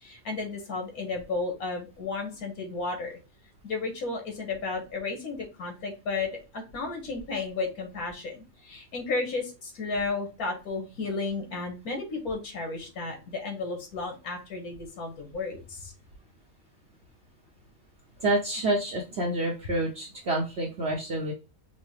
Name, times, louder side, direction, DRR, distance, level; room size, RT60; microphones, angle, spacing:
voice 1, 0.0-3.2 3.6-15.9, left 3 dB, 85° left, 3 dB, 1.7 m, -33 dB
voice 2, 18.2-21.3, right 1 dB, 55° right, -1 dB, 0.9 m, -28 dB
5.1 x 2.2 x 3.1 m, 0.30 s
omnidirectional pair, 1.5 m